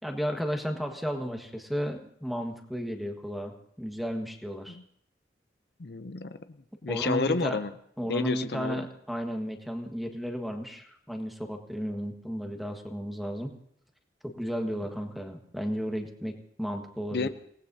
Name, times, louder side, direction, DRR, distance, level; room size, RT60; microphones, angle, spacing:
voice 1, 0.0-4.8 6.9-7.6 8.0-13.6 14.2-17.3, equal, ahead, 3 dB, 1.5 m, -33 dB
voice 2, 5.8-6.6 6.8-7.7 8.1-8.8 17.1-17.3, left 4 dB, 65° left, 11 dB, 0.6 m, -30 dB
27.5 x 18.5 x 2.8 m, 0.69 s
head